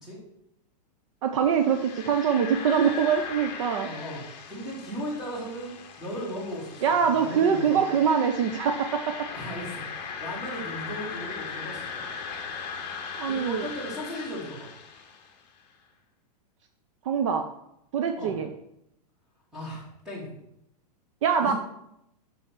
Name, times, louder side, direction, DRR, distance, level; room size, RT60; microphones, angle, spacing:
voice 1, 1.2-3.9 6.8-9.3 13.2-13.6 17.0-17.5 17.9-18.5 21.2-21.5, right 7 dB, 50° right, 7 dB, 0.6 m, -24 dB
sound 1, 1.5-15.4, left 6 dB, 30° left, 1.3 m, -39 dB
voice 2, 3.8-7.9 9.3-12.2 13.2-14.7 18.2-18.4 19.5-20.4 21.4-21.5, equal, ahead, -6 dB, 2.5 m, -37 dB
6.3 x 6.2 x 6.1 m, 0.80 s
supercardioid pair, 165°, 21 cm